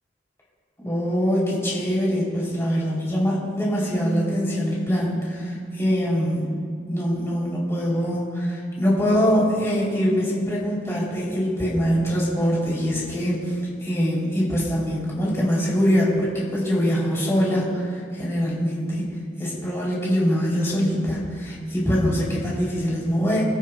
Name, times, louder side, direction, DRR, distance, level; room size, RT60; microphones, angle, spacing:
voice 1, 0.8-6.5 6.8-19.1 19.4-23.4, equal, 15° left, -6 dB, 3.0 m, -23 dB
24.5 x 13.0 x 2.3 m, 2.1 s
head